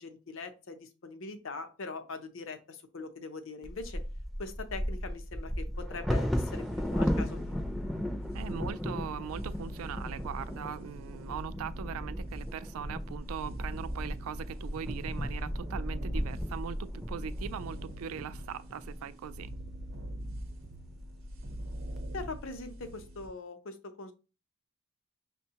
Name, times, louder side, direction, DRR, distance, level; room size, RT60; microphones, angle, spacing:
voice 1, 0.0-4.0 4.4-7.6 22.1-24.1, left 3 dB, 65° left, 0.6 m, -42 dB
Bird vocalization bird call bird song / Wind / Thunder, 3.6-19.5 20.2-20.3 20.6-21.0 21.5-22.0, equal, ahead, 0.4 m, -36 dB
sound 1, 6.3-23.3, equal, 65° right, 0.8 m, -42 dB
voice 2, 8.3-19.5, right 8 dB, 85° right, 0.3 m, -40 dB
6.0 x 2.2 x 2.8 m
head